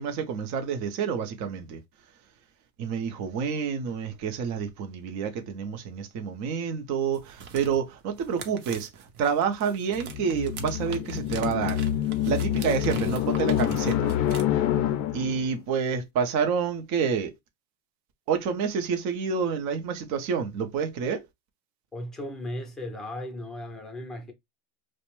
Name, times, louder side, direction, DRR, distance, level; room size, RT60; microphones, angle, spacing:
voice 1, 0.0-1.8 2.8-11.8 12.2-14.1 15.1-17.3 18.3-21.2, right 6 dB, 45° right, 0.6 m, -28 dB
sound 1, 7.1-14.4, right 6 dB, 80° right, 0.8 m, -43 dB
sound 2, 10.0-15.5, left 11 dB, 45° left, 0.4 m, -27 dB
voice 2, 21.9-24.3, left 1 dB, ahead, 0.6 m, -36 dB
2.5 x 2.1 x 3.0 m
supercardioid pair, 120°, 42 cm